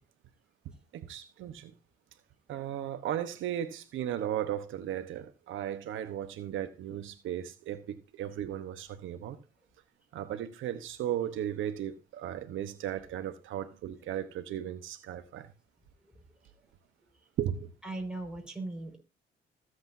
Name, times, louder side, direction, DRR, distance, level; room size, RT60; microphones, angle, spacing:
voice 1, 0.9-1.7 2.5-9.4 10.1-15.5 17.4-17.7, right 11 dB, 80° right, 1.1 m, -36 dB
voice 2, 17.8-19.0, right 2 dB, 5° right, 5.2 m, -38 dB
21.0 x 8.0 x 2.7 m
cardioid pair, 90°, 20 cm